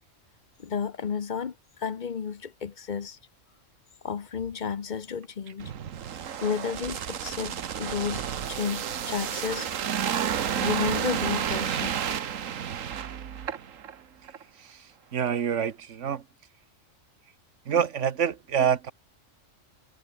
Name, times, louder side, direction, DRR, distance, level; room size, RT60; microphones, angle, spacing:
voice 1, 0.6-3.2 4.0-5.7 6.4-9.7 10.6-12.2, left 6 dB, 40° left, 0.9 m, -32 dB
sound 1, 5.6-13.9 14.3-14.4, right 8 dB, 85° right, 1.4 m, -31 dB
voice 2, 14.6-16.2 17.7-18.9, right 8 dB, 70° right, 1.4 m, -27 dB
omnidirectional pair, 1.3 m